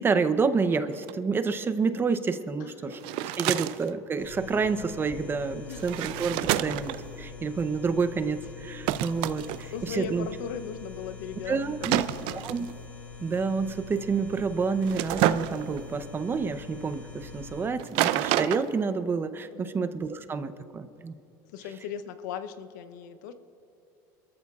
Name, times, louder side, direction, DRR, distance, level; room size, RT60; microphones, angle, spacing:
voice 1, 0.0-3.0 3.4-10.3 11.5-12.0 12.4-12.7 13.2-21.2, right 5 dB, 25° right, 11 dB, 0.7 m, -29 dB
sound 1, 0.9-1.1 2.9-3.9 5.8-7.0 8.9-9.7 11.8-12.7 14.8-15.8 17.8-18.7, right 14 dB, 70° right, 0.5 m, -28 dB
voice 2, 2.6-3.6 5.7-6.1 9.5-12.4 19.5-19.8 21.5-23.3, left 7 dB, 90° left, 11 dB, 0.8 m, -39 dB
sound 2, 4.2-17.7, left 4 dB, 15° left, 3.0 m, -44 dB
26.5 x 14.0 x 2.4 m, 2.9 s
supercardioid pair, 120°, 10 cm